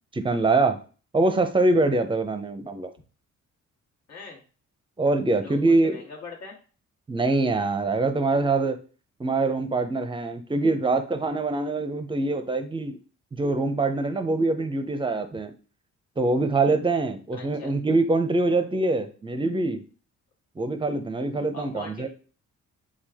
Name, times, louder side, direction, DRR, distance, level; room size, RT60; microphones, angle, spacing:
voice 1, 0.1-0.8 1.1-2.9 5.0-6.0 7.1-8.8 9.2-13.0 13.3-15.5 16.2-19.8 20.6-22.1, right 2 dB, 15° right, 8 dB, 0.5 m, -24 dB
voice 2, 4.1-4.4 5.4-6.6 17.3-17.7 21.5-22.1, left 4 dB, 65° left, -2 dB, 1.5 m, -41 dB
4.5 x 2.4 x 3.5 m, 0.38 s
cardioid pair, 90°, 30 cm